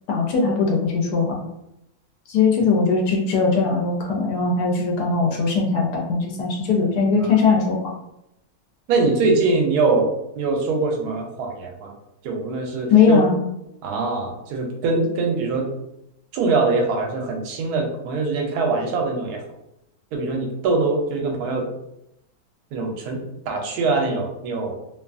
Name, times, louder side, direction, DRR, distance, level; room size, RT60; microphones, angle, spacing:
voice 1, 0.1-1.4 2.3-7.9 12.9-13.4, left 5 dB, 85° left, -1 dB, 1.1 m, -20 dB
voice 2, 8.9-11.9 12.2-13.2 13.8-15.7 16.3-19.4 20.1-21.7 22.7-24.8, right 3 dB, 85° right, 2 dB, 1.1 m, -23 dB
2.8 x 2.3 x 2.4 m, 0.84 s
omnidirectional pair, 1.6 m